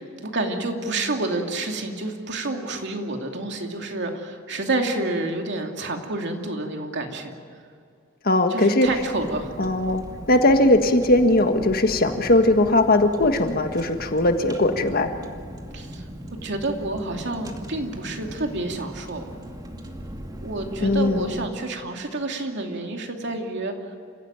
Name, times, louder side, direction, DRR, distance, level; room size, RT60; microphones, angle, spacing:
voice 1, 0.3-7.3 8.5-9.5 15.7-16.0 16.4-19.2 20.4-23.7, right 2 dB, 60° right, 3 dB, 2.7 m, -29 dB
voice 2, 8.2-8.9 9.6-10.0 10.3-15.1 20.8-21.3, left 1 dB, 45° left, 6 dB, 1.7 m, -19 dB
Car, 8.8-21.5, equal, 20° right, 2.4 m, -39 dB
29.0 x 16.0 x 9.1 m, 2.3 s
head